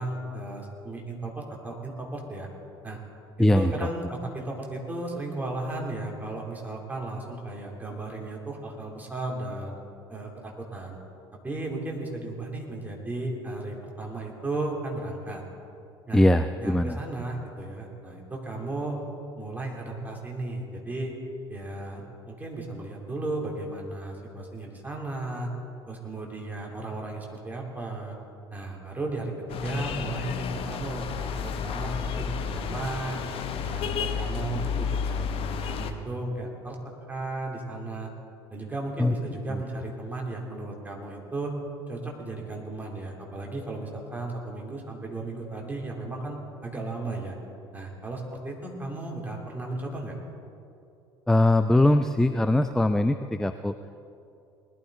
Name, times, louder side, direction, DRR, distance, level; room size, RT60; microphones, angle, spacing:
voice 1, 0.0-2.5 2.8-3.0 3.5-9.8 10.1-11.0 11.4-15.4 16.1-16.2 16.6-19.1 19.4-21.1 21.5-25.5 25.9-28.2 28.5-33.2 33.6-36.8 37.1-38.1 38.5-41.5 41.9-47.3 47.7-50.1, right 2 dB, 10° right, -1 dB, 3.2 m, -35 dB
voice 2, 3.4-3.7 16.1-17.0 39.0-39.1 39.5-39.6 51.3-53.8, left 1 dB, 5° left, 10 dB, 0.4 m, -21 dB
sound 1, 29.5-35.9, left 6 dB, 45° left, 1.0 m, -31 dB
20.0 x 12.5 x 4.0 m, 2.6 s
figure-of-eight pair, 60°, 14 cm